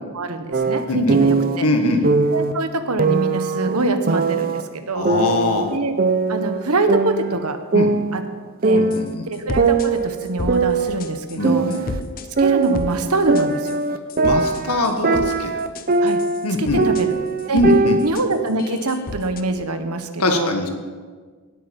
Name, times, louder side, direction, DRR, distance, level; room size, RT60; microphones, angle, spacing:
voice 1, 0.1-1.7 2.3-5.1 5.7-5.9 6.3-7.6 8.1-8.2 8.6-8.8 9.3-11.7 12.4-13.8 16.0-16.2 16.6-17.1 17.5-17.6 18.0-20.5, right 2 dB, 85° right, 8 dB, 1.2 m, -24 dB
sound 1, 0.5-1.6 2.0-2.5 3.0-4.6 5.0-6.6 6.9-8.4 8.6-9.1 9.6-12.0 12.4-16.5 16.8-18.1, right 4 dB, 40° right, 0.6 m, -20 dB
voice 2, 0.9-1.2 1.6-2.0 4.9-5.7 7.7-7.9 8.7-9.3 11.3-11.8 14.2-15.6 16.4-16.8 17.5-18.0 20.2-20.7, left 2 dB, 85° left, 5 dB, 1.7 m, -21 dB
sound 2, 8.9-9.1 9.3-9.9 10.2-10.6 11.0-11.4 11.7-12.3 12.6-12.9 13.4-13.8 14.1-15.3 15.6-17.1 17.4-17.7 18.0-19.4, left 3 dB, 40° left, 0.6 m, -32 dB
17.5 x 8.4 x 5.4 m, 1.5 s
head